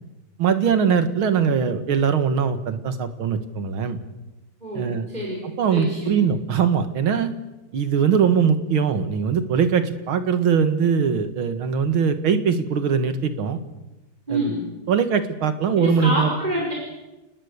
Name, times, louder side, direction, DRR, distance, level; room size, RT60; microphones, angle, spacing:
voice 1, 0.4-4.0 4.8-5.1 5.6-7.3 7.7-13.6 14.3-14.5 14.9-16.3, right 6 dB, 90° right, 9 dB, 2.4 m, -21 dB
voice 2, 4.6-5.4 5.7-6.2 14.3-14.6 15.8-16.7, right 1 dB, 20° right, -3 dB, 5.7 m, -27 dB
29.5 x 19.5 x 6.7 m, 1.1 s
omnidirectional pair, 2.2 m